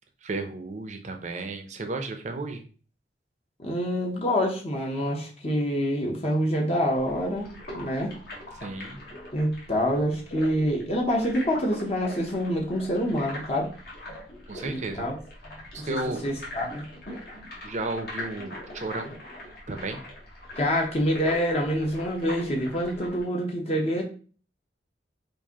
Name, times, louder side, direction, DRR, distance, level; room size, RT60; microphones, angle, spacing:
voice 1, 0.2-2.6 8.6-9.0 14.5-15.1 15.7-16.3 17.6-19.2 19.7-20.0, right 2 dB, 45° right, 6 dB, 0.6 m, -33 dB
voice 2, 3.6-8.1 9.3-13.7 14.6-15.2 15.8-16.0 16.2-16.9 20.6-24.0, equal, 35° left, 0 dB, 0.8 m, -26 dB
sound 1, 6.9-23.2, left 1 dB, 60° left, 1.3 m, -42 dB
4.6 x 2.6 x 2.9 m, 0.40 s
head